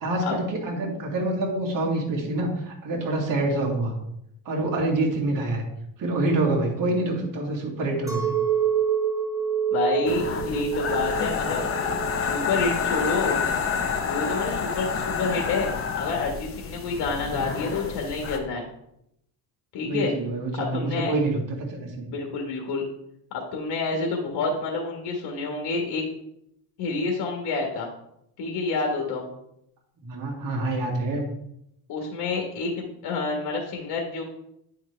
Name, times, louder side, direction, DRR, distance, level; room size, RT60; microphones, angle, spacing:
voice 1, 0.0-3.9 4.5-5.6 6.0-8.3 17.3-17.4 19.9-22.0 30.0-31.3, right 2 dB, 50° right, -1 dB, 2.0 m, -26 dB
Chink clink, 8.1-13.5, right 8 dB, 10° right, 1.2 m, -27 dB
voice 2, 9.7-12.0 12.3-13.4 14.1-18.6 19.7-20.1 20.6-21.1 22.1-22.8 23.5-26.0 26.8-27.9 28.4-29.2 31.9-34.2, left 4 dB, 70° left, 1 dB, 1.6 m, -28 dB
sound 1, 10.1-18.4, left 6 dB, 35° left, 0.8 m, -28 dB
9.6 x 4.6 x 3.3 m, 0.77 s
cardioid pair, 115°, 41 cm